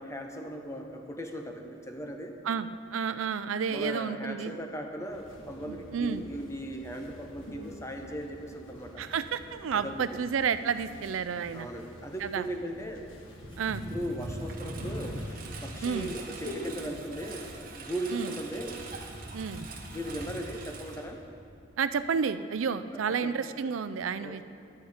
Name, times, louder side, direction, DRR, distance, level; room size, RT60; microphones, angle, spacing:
voice 1, 0.0-2.4 3.7-9.0 9.7-10.2 11.5-13.1 13.9-15.2 15.6-18.8 19.9-21.2 23.0-23.4 24.2-24.4, equal, 15° left, 4 dB, 0.8 m, -38 dB
voice 2, 2.4-4.5 5.7-6.2 9.0-11.7 12.2-12.5 13.6-13.8 15.8-16.1 18.1-18.3 19.3-19.7 21.8-24.4, right 6 dB, 85° right, 12 dB, 0.4 m, -31 dB
sound 1, 5.1-17.6, left 1 dB, 80° left, 1.5 m, -46 dB
Engine, 12.9-21.7, right 2 dB, 45° right, 1.1 m, -42 dB
10.5 x 10.5 x 5.0 m, 2.5 s
head